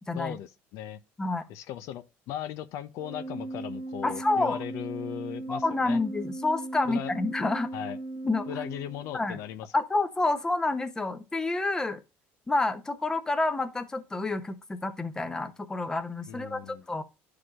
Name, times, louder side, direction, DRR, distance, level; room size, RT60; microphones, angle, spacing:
voice 1, 0.1-1.0 1.5-6.0 6.8-7.1 7.7-8.0 8.5-9.7 16.3-16.8, left 11 dB, 65° left, 0.7 m, -38 dB
Organ, 3.0-9.5, right 2 dB, 80° right, 1.9 m, -38 dB
voice 2, 4.0-4.6 5.5-7.7 8.2-8.6 9.1-9.4 9.7-12.0 12.5-17.0, left 2 dB, 10° left, 0.8 m, -28 dB
11.0 x 4.9 x 2.4 m
cardioid pair, 130°, 5 cm